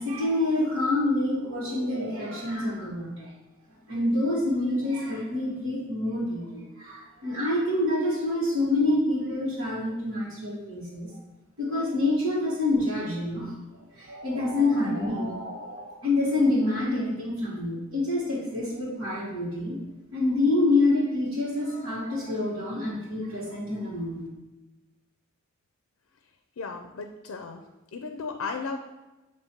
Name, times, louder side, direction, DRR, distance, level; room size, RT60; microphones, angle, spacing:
voice 1, 0.0-3.3 3.9-11.1 11.6-13.5 14.0-19.8 20.1-24.3, left 2 dB, 70° right, -11 dB, 1.8 m, -27 dB
voice 2, 26.6-27.6 27.9-28.8, left 4 dB, 85° left, 5 dB, 0.5 m, -35 dB
7.1 x 3.1 x 4.4 m, 1.1 s
head